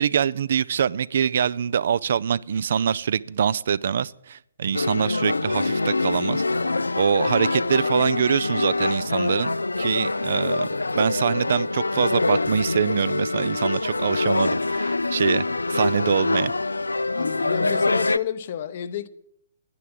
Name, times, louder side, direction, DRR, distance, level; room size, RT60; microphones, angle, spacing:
voice 1, 0.0-6.4 7.0-10.7 10.9-16.5, right 7 dB, 55° right, 0.4 m, -24 dB
sound 1, 4.7-18.2, left 3 dB, 80° left, 0.4 m, -24 dB
voice 2, 17.2-19.1, left 10 dB, 45° left, 0.8 m, -30 dB
10.0 x 9.4 x 7.7 m
figure-of-eight pair, 125°, 0 cm